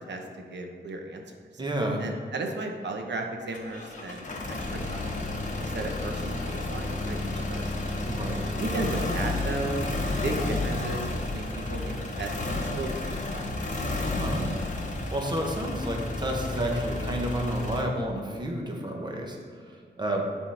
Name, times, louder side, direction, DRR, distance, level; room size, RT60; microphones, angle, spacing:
voice 1, 0.1-1.3 2.0-5.2 5.6-7.8 8.6-9.8 10.2-13.5, right 2 dB, 80° right, 3 dB, 0.8 m, -35 dB
voice 2, 1.6-2.0 8.1-8.4 14.0-14.5 14.8-19.4 20.0-20.2, right 1 dB, 25° right, 1 dB, 0.8 m, -30 dB
sound 1, 3.5-17.8, left 2 dB, 45° left, 0.9 m, -31 dB
8.9 x 3.7 x 4.2 m, 2.2 s
wide cardioid pair, 180°, 18 cm